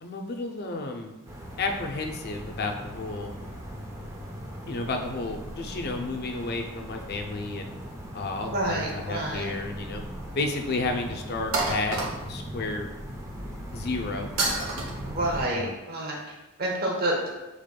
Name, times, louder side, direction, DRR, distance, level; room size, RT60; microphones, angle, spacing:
voice 1, 0.0-1.1 1.6-3.3 4.7-7.7 8.1-10.0 10.4-12.0 12.3-12.9 13.7-14.3 15.5-15.7, left 3 dB, 50° left, 3 dB, 0.5 m, -32 dB
sound 1, 1.3-15.5, equal, 15° right, 0.5 m, -39 dB
voice 2, 8.5-9.6 15.0-16.2 16.6-17.3, right 1 dB, 45° right, -1 dB, 0.8 m, -28 dB
sound 2, 9.4-10.2 10.5-10.6 11.5-12.5 14.4-14.9, right 3 dB, 80° right, 0.8 m, -29 dB
5.1 x 3.5 x 2.2 m, 1.0 s
head